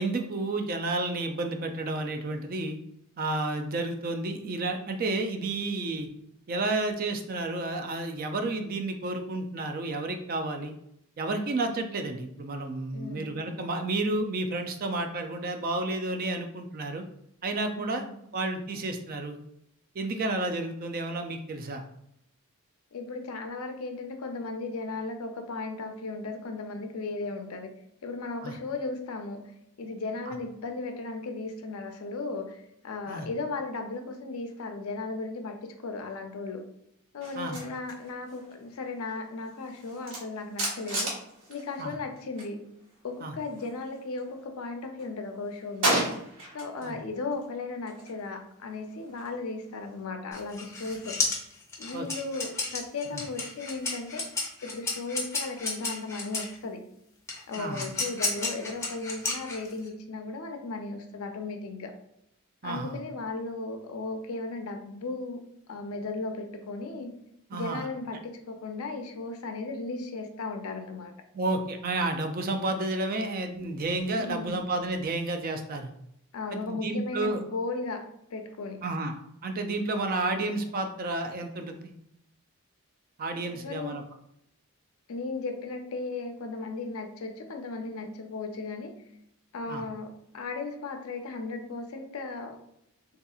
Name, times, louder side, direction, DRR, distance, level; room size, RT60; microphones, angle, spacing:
voice 1, 0.0-2.8 3.2-6.1 6.5-10.7 11.2-17.0 17.4-18.0 18.3-19.4 20.0-21.8 28.4-28.5 33.1-33.3 37.3-37.6 41.8-41.9 43.2-43.3 46.8-47.0 51.9-52.1 53.1-53.2 57.6-57.8 62.6-63.0 67.5-67.9 71.3-75.9 76.5-77.4 78.8-79.1 79.4-81.9 83.2-84.0 89.7-89.8, right 2 dB, 40° right, 6 dB, 0.3 m, -31 dB
voice 2, 12.9-13.4 17.8-18.1 22.9-27.7 28.0-29.5 29.8-36.6 37.1-41.1 41.5-42.6 43.0-46.1 46.5-51.2 51.8-54.2 54.6-56.8 57.5-61.9 62.6-65.4 65.7-67.1 67.5-71.1 74.2-74.7 76.3-78.0 78.3-78.9 83.5-84.0 85.1-88.9 89.5-92.6, left 3 dB, 70° left, 5 dB, 0.5 m, -36 dB
sound 1, 37.2-42.5 42.8-44.4 44.8-46.9 47.2-50.0, right 1 dB, 65° right, 1.2 m, -35 dB
sound 2, 50.3-56.5 57.3-59.9, left 3 dB, 15° left, 0.5 m, -32 dB
3.5 x 2.7 x 2.3 m, 0.77 s
head